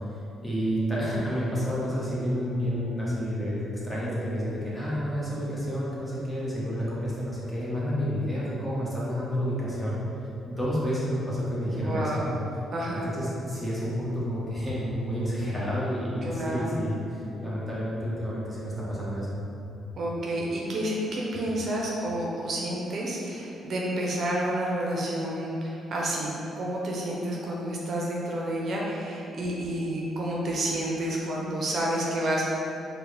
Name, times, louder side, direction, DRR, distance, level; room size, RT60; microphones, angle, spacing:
voice 1, 0.4-9.9 10.5-12.1 13.1-19.4, equal, 10° left, -8 dB, 1.1 m, -30 dB
voice 2, 11.7-12.3 12.7-13.1 16.2-16.8 20.0-32.4, right 1 dB, 55° right, -3 dB, 0.6 m, -30 dB
sound 1, 14.7-14.8 15.3-15.4 16.3-16.4 17.0-17.1 18.0-18.1 18.6-18.7 19.7-19.8 20.3-20.4 21.3-21.4 22.0-22.1, left 8 dB, 65° left, 0.4 m, -46 dB
4.5 x 2.2 x 3.3 m, 2.8 s
cardioid pair, 90°, 0 cm